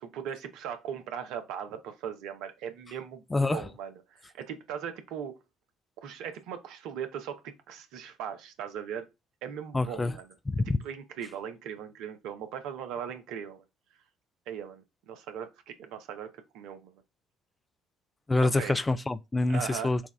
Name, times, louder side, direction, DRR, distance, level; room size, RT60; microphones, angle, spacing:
voice 1, 0.0-5.4 6.0-9.1 9.4-10.3 10.8-13.6 14.5-16.3 16.5-17.0 18.4-18.7 19.5-19.9, right 8 dB, 60° right, 0.7 m, -39 dB
voice 2, 3.3-3.6 9.7-10.1 10.5-10.8 18.3-20.0, left 2 dB, 20° left, 0.4 m, -26 dB
6.0 x 2.3 x 3.3 m
figure-of-eight pair, 50°, 0 cm